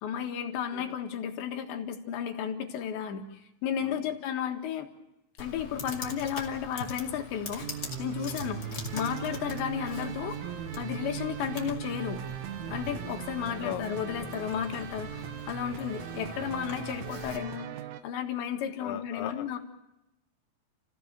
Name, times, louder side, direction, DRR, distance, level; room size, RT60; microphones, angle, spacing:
voice 1, 0.0-4.9 5.4-7.7 8.0-8.6 8.9-10.4 10.8-12.2 12.7-17.7 18.0-19.6, left 8 dB, 65° left, 5 dB, 3.7 m, -33 dB
voice 2, 3.8-4.1 13.6-13.9 14.2-14.3 14.8-14.9 18.8-19.6, left 12 dB, 85° left, 6 dB, 3.7 m, -39 dB
Computer keyboard, 5.4-17.4, left 3 dB, 50° left, 1.1 m, -43 dB
sound 1, 7.6-18.0, right 11 dB, 80° right, 3.6 m, -39 dB
29.0 x 16.5 x 6.8 m, 0.92 s
omnidirectional pair, 5.8 m